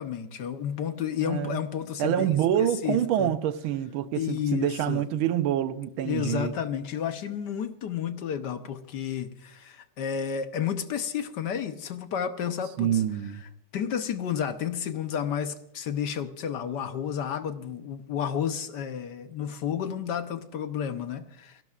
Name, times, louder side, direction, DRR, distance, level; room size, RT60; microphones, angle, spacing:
voice 1, 0.0-2.3 2.6-3.3 4.1-5.0 6.0-13.0 13.7-21.6, left 8 dB, 65° left, 1.3 m, -31 dB
voice 2, 1.2-1.6 2.0-6.6 12.8-13.4, right 10 dB, 85° right, 1.6 m, -26 dB
29.0 x 12.0 x 2.4 m
omnidirectional pair, 2.2 m